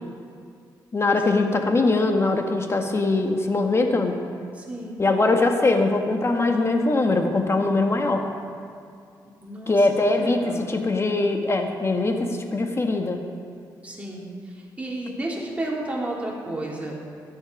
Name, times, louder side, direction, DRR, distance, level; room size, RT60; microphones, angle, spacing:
voice 1, 0.9-4.2 5.0-8.3 9.7-13.2, left 2 dB, 35° left, 4 dB, 1.6 m, -22 dB
voice 2, 4.6-5.0 9.4-9.8 10.2-10.7 13.8-14.3 14.5-16.9, right 1 dB, 15° right, -4 dB, 3.5 m, -32 dB
14.5 x 10.5 x 5.4 m, 2.3 s
cardioid pair, 75°, 8 cm